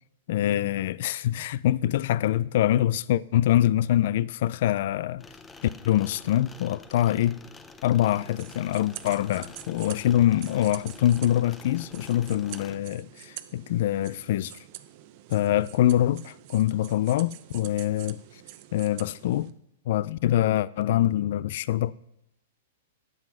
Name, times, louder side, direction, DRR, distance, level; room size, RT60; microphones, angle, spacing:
voice 1, 0.3-5.2 5.8-7.4 7.8-14.6 15.3-18.2 18.7-19.5 19.9-21.9, left 12 dB, 60° left, 0.3 m, -24 dB
sound 1, 5.2-12.8, left 3 dB, 10° left, 0.7 m, -48 dB
sound 2, 8.1-19.5, right 15 dB, 50° right, 0.7 m, -46 dB
11.0 x 7.7 x 6.2 m
hypercardioid pair, 140°, 0 cm